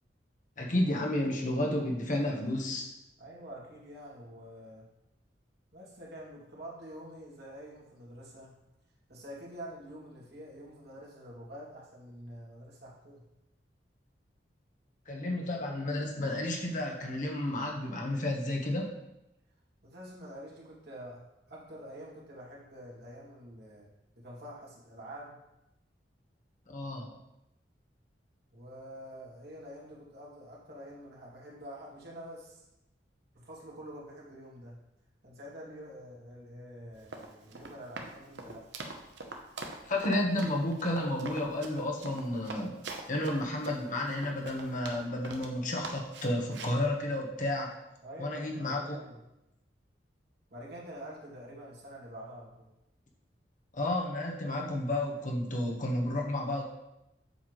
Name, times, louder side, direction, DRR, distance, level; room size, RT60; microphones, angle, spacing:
voice 1, 0.6-2.9 15.1-18.9 26.7-27.1 39.9-42.8 43.1-47.7 48.2-49.0 53.7-56.7, left 1 dB, 45° left, 0 dB, 1.3 m, -31 dB
voice 2, 3.2-4.9 5.7-8.5 9.1-13.2 19.8-23.9 24.1-25.4 28.5-32.6 33.3-34.8 35.2-38.7 48.0-49.2 50.5-52.7, equal, 60° right, -5 dB, 2.5 m, -47 dB
Run, 36.9-45.5 45.8-46.8, right 3 dB, 80° right, 0.9 m, -43 dB
7.9 x 7.1 x 3.2 m, 0.90 s
head